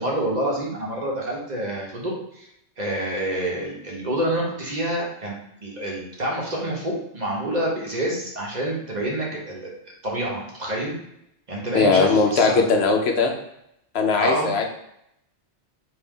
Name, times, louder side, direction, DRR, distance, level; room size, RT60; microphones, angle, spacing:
voice 1, 0.0-2.5 2.8-9.7 10.0-10.9 11.5-12.6 14.2-14.5, right 1 dB, 40° right, -3 dB, 0.9 m, -27 dB
voice 2, 11.7-13.3 13.9-14.6, left 4 dB, 70° left, 2 dB, 0.8 m, -19 dB
3.9 x 2.7 x 3.6 m, 0.77 s
omnidirectional pair, 1.2 m